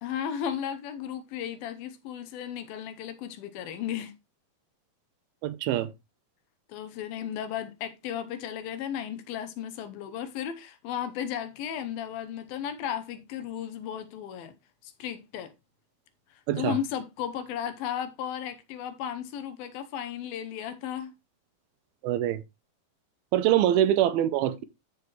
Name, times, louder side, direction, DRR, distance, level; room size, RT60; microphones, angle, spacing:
voice 1, 0.0-4.1 6.7-14.5 14.8-15.5 16.6-21.1 23.5-23.7, left 9 dB, 75° left, 2.6 m, -35 dB
voice 2, 5.4-5.9 16.5-16.7 22.0-22.4 23.3-24.6, right 12 dB, 80° right, 2.5 m, -24 dB
13.5 x 4.6 x 3.0 m
omnidirectional pair, 4.5 m